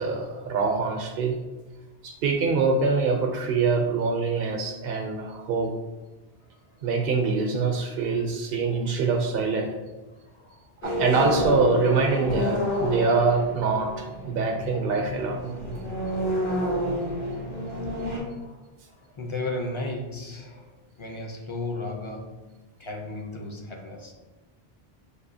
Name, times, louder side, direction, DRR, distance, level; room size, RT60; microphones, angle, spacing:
voice 1, 0.0-1.4 2.0-5.7 6.8-9.7 10.8-15.4, right 4 dB, 70° right, 2 dB, 0.7 m, -24 dB
voice 2, 10.3-10.7 18.2-18.6 18.9-22.5 22.8-24.1, left 2 dB, 40° left, 1 dB, 0.5 m, -35 dB
sound 1, 10.8-18.2, equal, 80° left, 1.4 m, -29 dB
6.4 x 2.6 x 2.6 m, 1.2 s
omnidirectional pair, 1.0 m